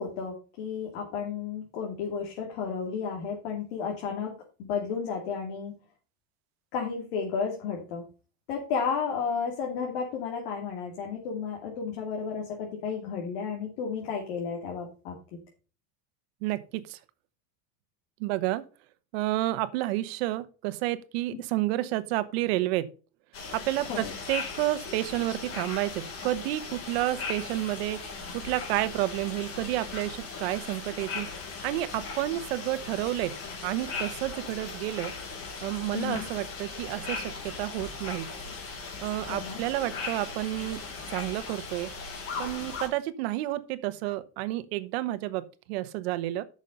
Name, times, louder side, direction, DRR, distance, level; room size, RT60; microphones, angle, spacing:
voice 1, 0.0-4.3 4.6-5.7 6.7-8.0 8.5-15.1 23.9-24.1 35.9-36.2 39.3-39.6, left 6 dB, 75° left, 2.8 m, -32 dB
voice 2, 16.4-17.0 18.2-18.6 19.1-22.9 23.5-28.0 28.3-31.3 31.6-33.3 33.6-35.1 35.6-38.3 39.0-40.8 41.1-41.9 42.4-46.4, right 16 dB, 85° right, 1.0 m, -30 dB
sound 1, 23.3-42.9, left 4 dB, 45° left, 4.5 m, -38 dB
9.3 x 6.4 x 5.4 m
cardioid pair, 155°, 30 cm